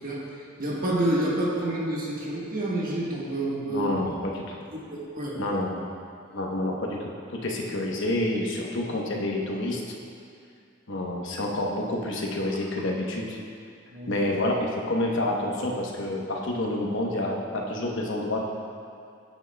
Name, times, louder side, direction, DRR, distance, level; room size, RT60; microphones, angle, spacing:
voice 1, 0.0-3.9 4.7-5.5 13.9-14.2, right 1 dB, 45° right, -4 dB, 1.4 m, -29 dB
voice 2, 3.7-4.6 5.4-5.8 6.3-7.1 7.4-9.8 10.9-13.4 14.1-18.4, left 1 dB, 60° left, -1 dB, 1.0 m, -28 dB
9.7 x 8.2 x 2.3 m, 2.3 s
head